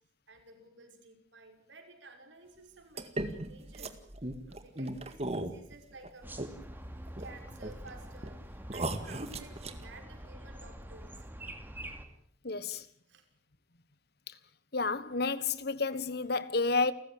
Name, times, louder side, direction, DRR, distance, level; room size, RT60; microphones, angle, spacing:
voice 1, 0.3-4.1 4.5-6.4 7.2-11.2 12.6-13.3, right 2 dB, 85° right, 6.0 m, -54 dB
sound 1, 3.0-6.7 7.1-7.9 8.2-8.3 8.6-9.8, right 1 dB, 35° right, 2.0 m, -37 dB
sound 2, 6.2-12.1, right 1 dB, 10° right, 2.7 m, -46 dB
voice 2, 12.4-12.8 14.7-16.9, left 3 dB, 60° left, 1.3 m, -30 dB
30.0 x 14.5 x 9.1 m
head